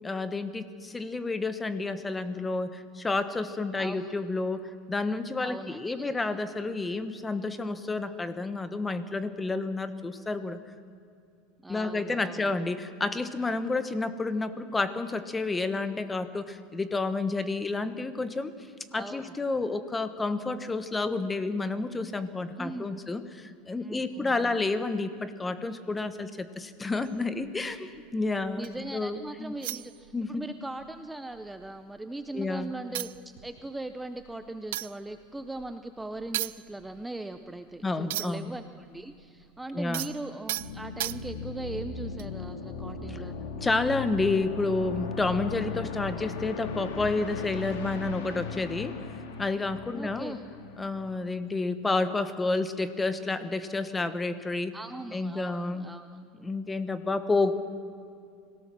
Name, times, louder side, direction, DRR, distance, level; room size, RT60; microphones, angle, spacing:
voice 1, 0.0-10.6 11.7-18.5 18.9-28.7 28.9-29.5 30.1-30.4 32.3-32.7 37.8-38.5 39.7-40.1 43.6-49.0 49.4-50.4 50.8-54.8 55.1-55.8 56.4-57.5, left 3 dB, 15° left, 11 dB, 1.1 m, -30 dB
voice 2, 3.7-4.1 5.4-6.2 11.6-12.5 18.9-19.3 22.6-23.2 23.8-24.6 28.5-33.1 33.4-43.4 49.9-50.4 54.7-56.2, right 2 dB, 5° right, 9 dB, 0.6 m, -40 dB
sound 1, 27.1-28.9 29.6-30.5 30.8-31.0 31.3-32.2 32.6-32.7 32.9-38.6 38.8-41.6 42.2-42.4, right 16 dB, 85° right, 0.4 m, -38 dB
sound 2, 40.6-51.3, left 5 dB, 85° left, 2.6 m, -38 dB
25.5 x 17.5 x 6.1 m, 2.4 s
supercardioid pair, 125°, 0 cm